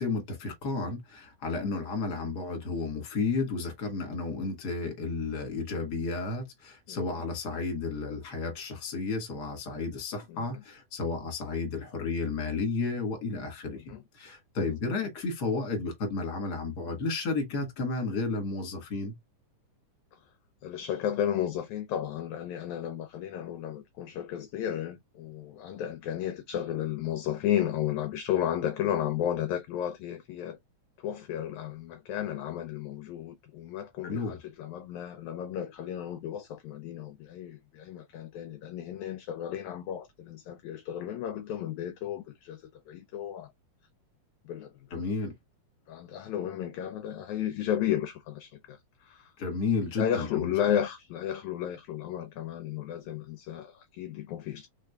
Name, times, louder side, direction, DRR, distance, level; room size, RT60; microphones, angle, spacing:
voice 1, 0.0-19.1 34.0-34.4 44.9-45.3 49.4-50.5, left 3 dB, 40° left, 1.7 m, -32 dB
voice 2, 6.9-7.2 10.3-10.6 13.7-14.0 14.6-14.7 20.1-20.2 20.6-30.6 31.0-43.5 44.4-45.0 45.9-49.3 50.0-54.7, left 10 dB, 80° left, 1.8 m, -33 dB
4.9 x 3.6 x 2.2 m
omnidirectional pair, 3.7 m